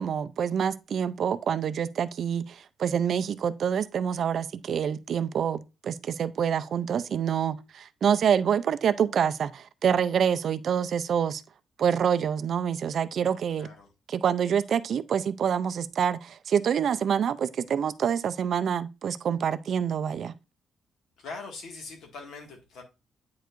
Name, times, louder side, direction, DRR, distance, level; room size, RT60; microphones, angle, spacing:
voice 1, 0.0-11.4 11.8-13.7 14.1-20.3, right 8 dB, 45° right, 0.4 m, -26 dB
voice 2, 13.6-13.9 21.2-22.8, left 4 dB, 70° left, 1.8 m, -42 dB
9.2 x 4.7 x 2.5 m
cardioid pair, 180°, 0 cm